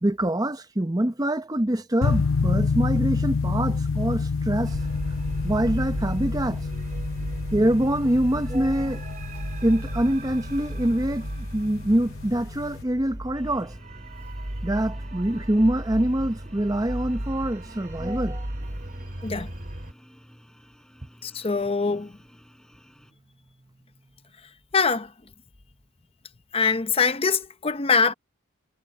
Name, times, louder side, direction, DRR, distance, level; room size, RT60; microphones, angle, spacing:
voice 1, 0.0-4.8 5.4-6.6 7.5-9.0 9.6-11.3 11.5-13.7 14.6-18.4, right 1 dB, 15° right, 0.8 m, -24 dB
sound 1, 2.0-12.8, left 4 dB, 70° left, 0.7 m, -29 dB
sound 2, 4.6-19.9, right 1 dB, 40° right, 2.5 m, -35 dB
sound 3, 13.3-23.1, equal, 5° left, 4.4 m, -51 dB
voice 2, 21.2-22.1 24.7-25.1 26.5-28.1, left 5 dB, 25° left, 0.7 m, -23 dB
head